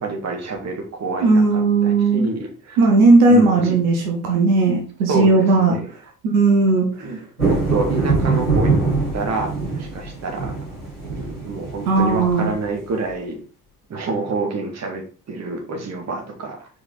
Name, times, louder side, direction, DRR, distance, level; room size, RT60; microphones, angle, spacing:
voice 1, 0.0-2.8 3.3-3.8 5.1-5.9 7.0-7.2 7.4-8.8 9.1-10.5 11.1-13.4 13.9-16.7, right 3 dB, 35° right, 3 dB, 1.7 m, -28 dB
voice 2, 1.2-2.3 2.8-5.7 6.2-7.1 11.9-12.5, right 3 dB, 70° right, 1 dB, 1.3 m, -16 dB
sound 1, 7.4-12.8, right 3 dB, 90° right, 2.5 m, -23 dB
4.9 x 4.7 x 4.3 m, 0.38 s
figure-of-eight pair, 50°, 44 cm